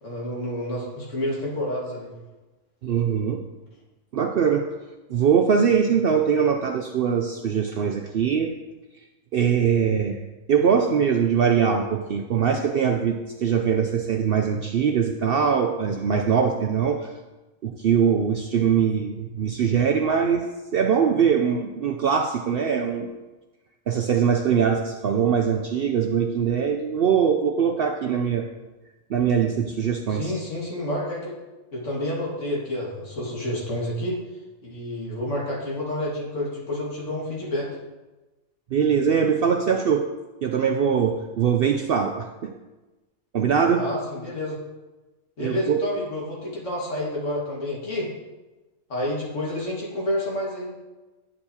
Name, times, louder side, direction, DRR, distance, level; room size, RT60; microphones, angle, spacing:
voice 1, 0.0-2.1 30.1-31.4 31.7-34.2 34.6-37.7 43.8-44.6 45.4-48.1 48.9-50.7, left 1 dB, 60° left, -4 dB, 2.1 m, -29 dB
voice 2, 2.8-3.4 4.1-4.7 5.1-8.5 9.3-10.2 10.5-17.1 17.6-20.5 20.7-23.1 23.9-28.4 29.1-30.3 38.7-40.1 40.4-42.5 43.3-43.8 45.4-45.8, right 7 dB, 70° right, 4 dB, 0.5 m, -22 dB
9.7 x 6.8 x 2.8 m, 1.1 s
omnidirectional pair, 1.5 m